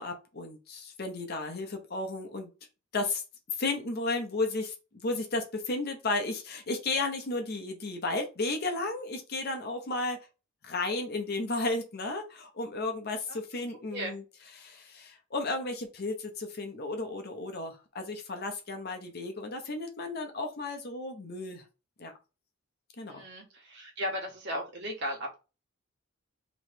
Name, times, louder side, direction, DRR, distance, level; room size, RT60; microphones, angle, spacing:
voice 1, 0.0-2.5 2.9-3.2 3.6-4.7 5.0-10.2 10.6-14.2 14.6-21.6 22.0-22.1 23.0-23.2, left 2 dB, 50° left, 4 dB, 0.8 m, -33 dB
voice 2, 13.3-14.1 23.1-25.4, equal, 55° right, 0 dB, 1.4 m, -37 dB
3.1 x 3.1 x 4.4 m, 0.31 s
head